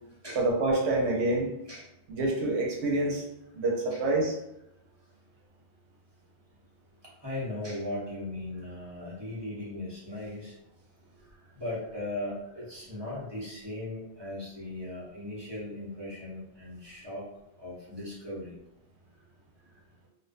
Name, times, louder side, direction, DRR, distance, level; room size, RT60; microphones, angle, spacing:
voice 1, 0.3-1.5 2.1-3.2 3.5-4.4, right 2 dB, 85° right, -1 dB, 0.9 m, -27 dB
voice 2, 7.2-10.5 11.6-17.2 17.6-18.5, left 1 dB, 25° right, -8 dB, 0.7 m, -38 dB
2.4 x 2.2 x 2.5 m, 0.83 s
omnidirectional pair, 1.1 m